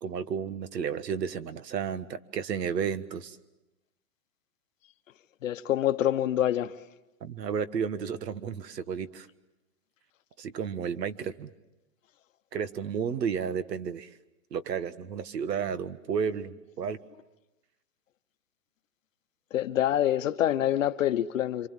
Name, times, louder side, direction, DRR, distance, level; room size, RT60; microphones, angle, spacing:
voice 1, 0.0-3.4 7.2-9.3 10.4-11.5 12.5-14.1 14.5-17.0, right 7 dB, 75° right, 1.6 m, -32 dB
voice 2, 5.4-6.7 19.5-21.7, left 11 dB, 50° left, 1.0 m, -26 dB
27.5 x 25.5 x 7.5 m
hypercardioid pair, 160°, 50 cm